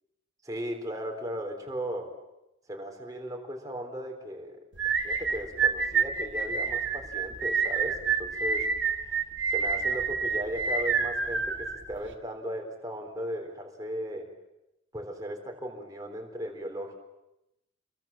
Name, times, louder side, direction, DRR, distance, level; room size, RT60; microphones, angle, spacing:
voice 1, 0.4-2.2 2.7-4.6 5.0-9.2 9.5-14.3 14.9-16.9, equal, 20° right, 2 dB, 4.1 m, -37 dB
sound 1, 4.8-12.1, right 5 dB, 90° right, 2.5 m, -28 dB
28.5 x 22.5 x 7.5 m, 0.92 s
head